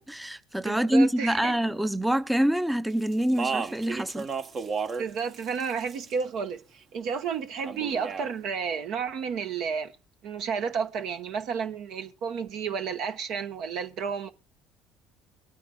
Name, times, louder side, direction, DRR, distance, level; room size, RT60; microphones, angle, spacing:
voice 1, 0.0-4.3, right 1 dB, 5° right, 0.6 m, -25 dB
voice 2, 0.6-1.6 5.0-9.9 10.2-14.3, right 6 dB, 70° right, 1.0 m, -31 dB
Speech, 3.1-5.1 5.3-6.2 7.7-8.3, right 5 dB, 45° right, 1.0 m, -33 dB
23.0 x 9.2 x 2.3 m
hypercardioid pair, 65°, 0 cm